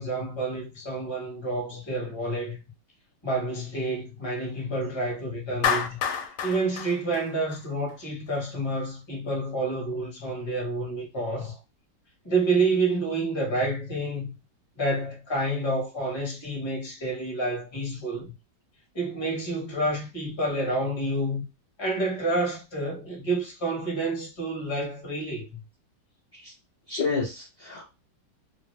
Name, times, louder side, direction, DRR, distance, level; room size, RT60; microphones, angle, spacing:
voice 1, 0.0-2.6 3.2-6.0 6.4-11.5 12.2-14.3 14.8-18.3 18.9-21.4 21.8-25.6, right 2 dB, 20° left, 1.0 m, -29 dB
Clapping, 5.6-7.9, left 7 dB, 90° left, 1.3 m, -29 dB
voice 2, 26.9-27.9, left 4 dB, 45° left, 1.0 m, -30 dB
2.8 x 2.5 x 3.1 m
omnidirectional pair, 1.9 m